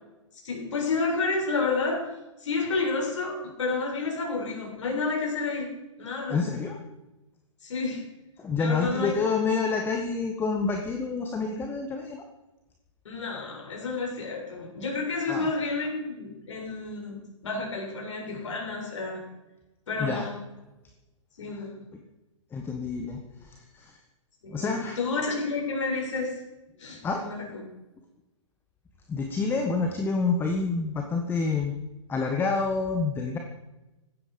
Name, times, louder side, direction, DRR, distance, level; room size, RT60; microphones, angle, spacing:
voice 1, 0.4-2.0 2.4-5.7 6.0-6.4 7.6-8.0 8.6-9.3 13.1-19.2 19.9-20.4 21.4-21.7 24.4-26.3 26.8-27.6, left 3 dB, 65° left, -1 dB, 7.1 m, -30 dB
voice 2, 6.3-6.8 8.4-12.2 15.3-15.5 20.0-20.2 22.5-24.0 24.5-25.0 27.0-27.2 29.1-31.7 32.1-33.4, left 4 dB, 10° left, 4 dB, 1.4 m, -28 dB
17.0 x 13.5 x 5.2 m, 1.0 s
figure-of-eight pair, 125°, 17 cm